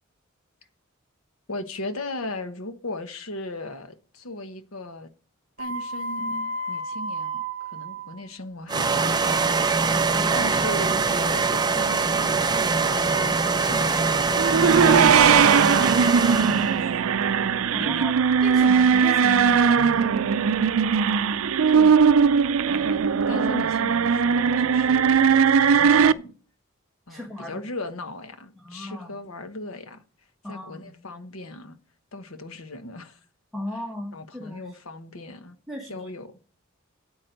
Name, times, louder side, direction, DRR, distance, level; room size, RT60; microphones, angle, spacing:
voice 1, 1.5-5.1 5.6-9.4 10.3-12.4 12.8-14.6 15.1-16.9 17.8-18.0 21.7-22.0 22.7-25.2 25.7-26.3 27.1-30.0 30.5-31.8 32.1-33.2 34.1-35.6 35.9-36.4, left 2 dB, 80° left, 1.2 m, -37 dB
sound 1, 5.6-8.2, right 1 dB, 40° right, 1.6 m, -32 dB
sound 2, 8.7-16.8, right 4 dB, 20° right, 0.5 m, -23 dB
voice 2, 9.9-10.5 17.7-20.2 27.1-27.6 28.6-29.1 30.4-30.9 33.5-34.8 35.7-36.1, left 1 dB, ahead, 1.4 m, -36 dB
sound 3, 14.4-26.1, right 6 dB, 75° right, 0.4 m, -19 dB
8.8 x 8.6 x 5.2 m
head